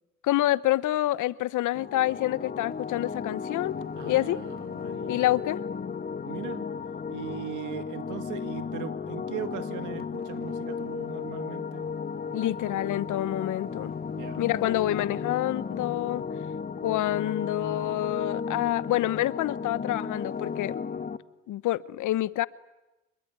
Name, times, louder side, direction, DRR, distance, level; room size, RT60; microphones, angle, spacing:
voice 1, 0.2-3.8 4.1-4.4 5.1-5.6 12.3-13.9 14.4-16.2 16.8-20.8 21.5-22.5, left 15 dB, 80° left, 0.9 m, -27 dB
sound 1, 1.7-21.2, left 5 dB, 30° left, 1.2 m, -35 dB
voice 2, 4.0-5.3 6.3-6.7 7.1-11.9 12.3-12.5 14.1-14.5, right 11 dB, 90° right, 2.1 m, -39 dB
26.5 x 22.0 x 9.5 m
cardioid pair, 90°, 30 cm